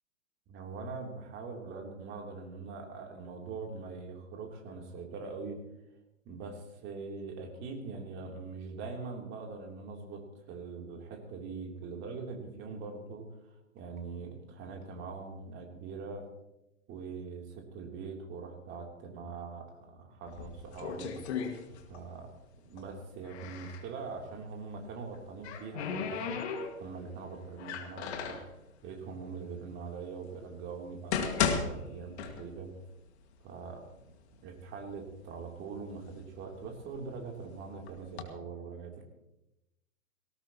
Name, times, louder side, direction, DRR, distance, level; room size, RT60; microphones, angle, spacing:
voice 1, 0.5-5.6 6.2-16.2 16.9-22.3 22.6-28.4 28.8-32.7 33.4-33.8 34.4-39.0, right 4 dB, 30° right, 1 dB, 3.2 m, -42 dB
sound 1, 20.3-22.2 22.4-23.9 25.0-27.0 27.6-28.5 29.3-29.4 30.0-30.1 30.8-32.8 33.1-33.2 33.9-34.0 34.4-35.0 35.6-37.2 37.9-38.2, left 6 dB, 50° left, 2.2 m, -35 dB
18.0 x 18.0 x 3.0 m, 0.90 s
hypercardioid pair, 120°, 42 cm